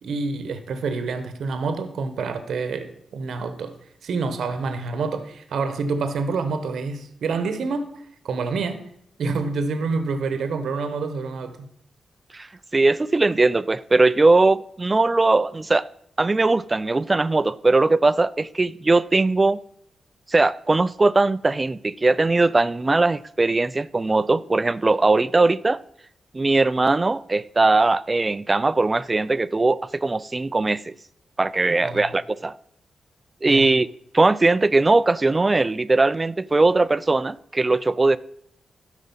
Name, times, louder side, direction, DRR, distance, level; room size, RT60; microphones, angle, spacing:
voice 1, 0.0-3.7 4.0-8.9 9.2-11.6 31.8-32.1 33.4-33.7, right 4 dB, 80° right, 1.0 m, -27 dB
voice 2, 12.7-15.9 16.2-19.6 20.3-25.8 26.3-30.9 31.4-32.5 33.4-33.9 34.1-38.2, right 3 dB, 30° right, 0.4 m, -20 dB
12.5 x 5.0 x 5.5 m
cardioid pair, 65°, 0 cm